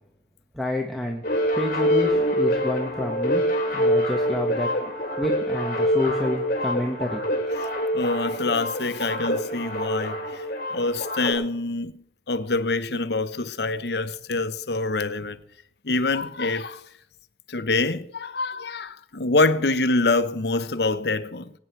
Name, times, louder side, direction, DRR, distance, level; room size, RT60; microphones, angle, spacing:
voice 1, 0.5-1.2 1.5-3.4 3.7-4.7 5.2-7.3, left 1 dB, ahead, 1.4 m, -28 dB
sound 1, 1.2-11.3, equal, 45° left, 3.6 m, -25 dB
voice 2, 7.9-10.4 10.7-15.4 15.8-16.8 17.5-21.5, left 3 dB, 65° left, 0.9 m, -25 dB
22.5 x 9.7 x 4.6 m
head